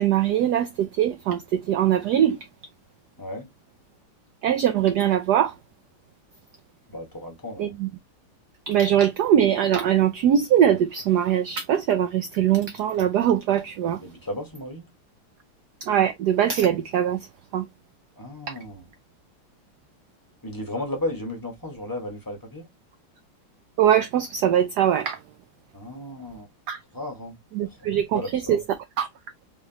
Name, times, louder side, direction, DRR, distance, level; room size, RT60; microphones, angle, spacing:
voice 1, 0.0-2.4 4.4-5.5 7.6-7.9 8.7-14.0 15.8-17.3 17.5-17.7 23.8-25.2 26.7-26.8 27.5-28.2 28.5-28.6 29.0-29.1, right 10 dB, 85° right, 0.9 m, -21 dB
voice 2, 6.9-7.8 14.0-14.9 18.2-18.8 20.4-22.7 25.7-26.5 26.9-27.8 28.1-28.6, left 1 dB, 15° left, 0.9 m, -34 dB
3.5 x 3.4 x 2.8 m
omnidirectional pair, 2.3 m